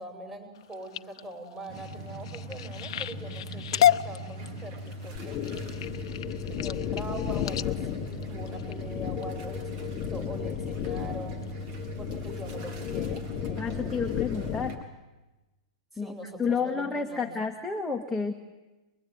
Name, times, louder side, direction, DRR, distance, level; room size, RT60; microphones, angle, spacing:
voice 1, 0.0-5.4 6.5-11.4 12.0-14.0 15.9-17.3, right 1 dB, 15° right, 4 dB, 6.5 m, -42 dB
sound 1, 0.6-9.2 9.8-10.2 10.6-11.0 11.4-11.5 11.8-11.9, left 11 dB, 65° left, 0.9 m, -31 dB
sound 2, 1.7-14.8, equal, 45° right, 3.8 m, -39 dB
sound 3, 5.2-14.8, left 11 dB, 35° left, 1.2 m, -35 dB
voice 2, 13.6-14.8 16.0-16.1 16.4-18.3, left 5 dB, 5° left, 1 dB, 1.5 m, -30 dB
25.0 x 22.0 x 9.4 m, 1.1 s
hypercardioid pair, 125°, 3 cm